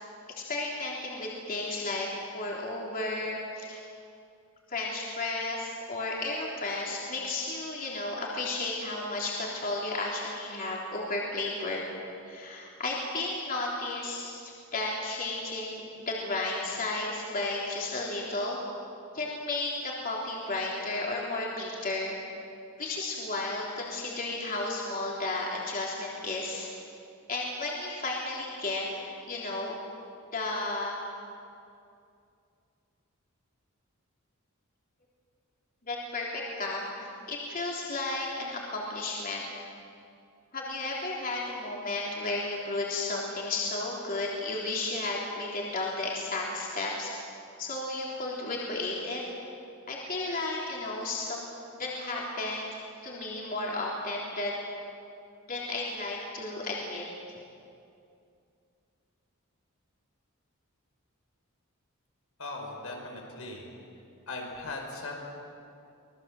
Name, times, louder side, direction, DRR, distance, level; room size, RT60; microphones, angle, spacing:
voice 1, 0.3-2.1 2.3-3.8 4.7-11.8 12.3-18.6 19.1-22.2 22.8-26.7 27.3-29.8 30.3-31.0 35.9-39.4 40.5-47.1 47.6-49.2 49.9-54.5 55.5-57.1, left 2 dB, 40° left, -3 dB, 3.5 m, -33 dB
voice 2, 62.4-63.7 64.3-65.1, left 2 dB, 80° left, 1 dB, 5.2 m, -38 dB
25.5 x 19.5 x 7.8 m, 2.5 s
head